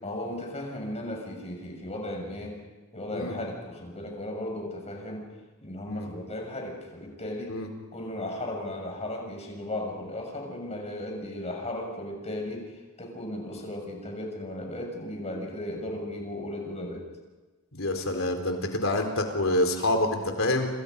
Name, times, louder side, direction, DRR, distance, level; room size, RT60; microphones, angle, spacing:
voice 1, 0.0-2.6 2.9-5.3 5.6-7.6 7.9-17.0, left 1 dB, 30° left, 1 dB, 6.9 m, -36 dB
voice 2, 17.7-20.7, left 1 dB, 75° left, 4 dB, 4.1 m, -27 dB
28.5 x 27.5 x 5.4 m, 1.2 s
head